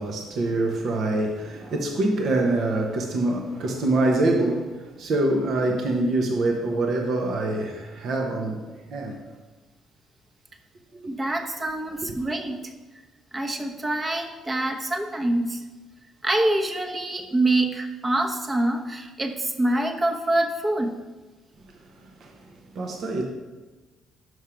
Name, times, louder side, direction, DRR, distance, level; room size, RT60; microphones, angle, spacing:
voice 1, 0.0-9.2 10.9-11.0 21.7-23.2, right 2 dB, 60° right, 0.9 m, -25 dB
voice 2, 11.1-12.7 13.3-15.6 16.2-21.0, right 1 dB, 30° right, 1.0 m, -25 dB
6.2 x 5.5 x 4.9 m
hypercardioid pair, 55°, 0 cm